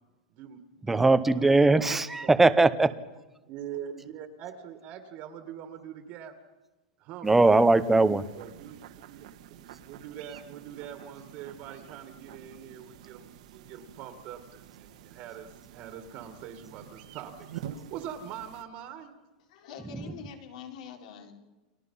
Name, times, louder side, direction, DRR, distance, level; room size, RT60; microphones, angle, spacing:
voice 1, 0.3-1.1 1.4-1.5 1.7-2.3 3.5-6.3 7.0-7.3 8.3-8.8 9.1-9.3 9.8-19.1, right 9 dB, 35° right, 2.0 m, -43 dB
voice 2, 0.8-2.9 7.2-8.3 20.0-20.2, right 3 dB, 5° right, 0.7 m, -21 dB
sound 1, 7.2-18.6, right 10 dB, 60° right, 1.6 m, -48 dB
voice 3, 19.5-21.3, left 7 dB, 60° left, 4.0 m, -44 dB
30.0 x 23.0 x 5.6 m
supercardioid pair, 165°, 4 cm